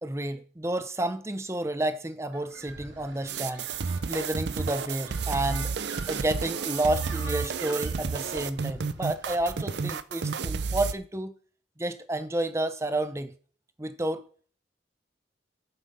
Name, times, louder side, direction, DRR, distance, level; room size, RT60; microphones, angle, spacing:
voice 1, 0.0-3.7 4.1-5.7 6.1-11.3 11.8-13.3 13.8-14.2, right 1 dB, 15° right, 0.7 m, -30 dB
sound 1, 2.3-9.7, right 2 dB, 80° right, 2.2 m, -45 dB
sound 2, 3.3-10.9, right 5 dB, 65° right, 0.5 m, -31 dB
12.0 x 5.7 x 5.4 m
head